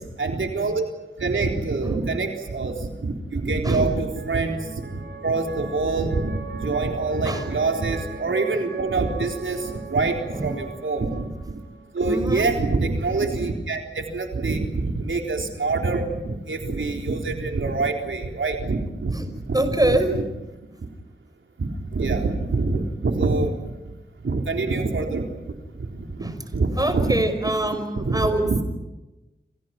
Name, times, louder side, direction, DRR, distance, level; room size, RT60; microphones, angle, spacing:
voice 1, 0.2-0.8 1.2-4.9 5.2-11.3 11.9-19.2 19.5-19.8 20.1-20.2 21.6-23.7 24.2-27.1 27.9-28.6, right 3 dB, 90° right, 3 dB, 3.9 m, -25 dB
sound 1, 2.6-12.7, right 4 dB, 70° right, 6.8 m, -40 dB
voice 2, 8.2-8.6 10.3-10.5 12.1-12.4 19.1-19.3 19.5-20.1 26.2-26.5 26.8-28.6, right 1 dB, 20° right, 8 dB, 5.7 m, -25 dB
30.0 x 27.5 x 6.0 m, 1.0 s
wide cardioid pair, 75°, 20 cm